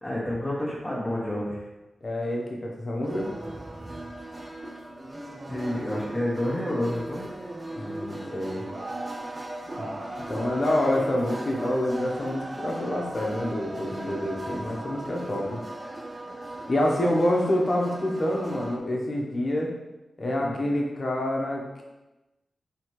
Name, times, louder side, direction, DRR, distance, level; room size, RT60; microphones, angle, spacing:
voice 1, 0.0-1.6 5.5-7.3 20.4-20.6, left 1 dB, 10° left, -8 dB, 1.2 m, -29 dB
voice 2, 2.0-3.3 7.8-8.6 9.8-9.9 10.3-15.6 16.7-19.7 20.2-21.8, left 1 dB, 50° left, -1 dB, 1.0 m, -27 dB
sound 1, 3.0-18.8, right 1 dB, 35° right, 0.6 m, -38 dB
4.2 x 3.1 x 3.1 m, 1.0 s
cardioid pair, 45°, 0 cm